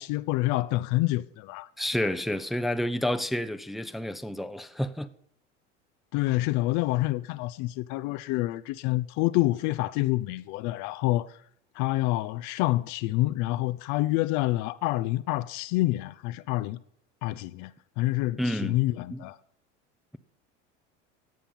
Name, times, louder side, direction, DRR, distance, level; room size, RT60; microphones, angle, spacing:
voice 1, 0.0-1.7 6.1-11.4 11.7-16.8 17.2-19.4, left 18 dB, 55° left, 0.7 m, -27 dB
voice 2, 1.8-5.1 18.4-18.8 19.1-19.2, left 1 dB, ahead, 0.7 m, -29 dB
17.0 x 7.0 x 5.7 m
hypercardioid pair, 80°, 37 cm